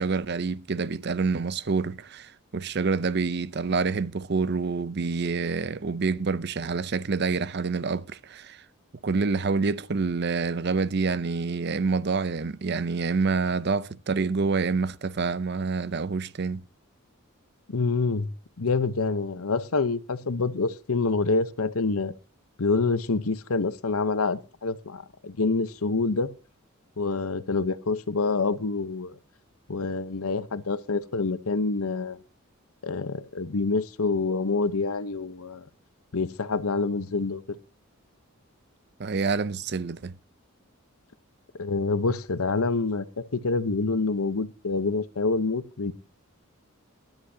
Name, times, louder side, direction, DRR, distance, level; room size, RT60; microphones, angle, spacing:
voice 1, 0.0-8.6 9.0-16.6 39.0-40.1, right 4 dB, 50° right, 0.6 m, -27 dB
voice 2, 17.7-18.3 18.6-22.1 22.6-26.3 27.0-29.1 29.7-32.2 32.8-35.6 36.1-37.4 41.6-43.0 43.3-45.9, left 3 dB, 90° left, 0.9 m, -27 dB
18.0 x 11.0 x 2.8 m
head